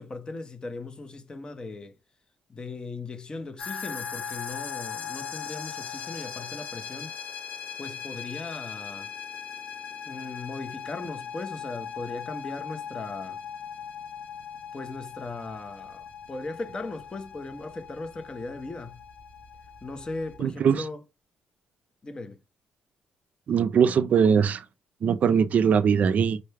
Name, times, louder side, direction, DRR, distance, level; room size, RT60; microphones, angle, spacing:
voice 1, 0.0-1.9 2.5-7.1 7.8-9.1 10.1-13.4 14.7-19.0 19.8-21.0 22.0-22.4, left 3 dB, 30° left, 0.8 m, -38 dB
sound 1, 3.6-20.4, left 7 dB, 65° left, 1.7 m, -39 dB
voice 2, 20.4-20.8 23.5-24.6 25.0-26.4, right 7 dB, 55° right, 0.4 m, -21 dB
5.4 x 2.2 x 3.3 m
cardioid pair, 100°, 3 cm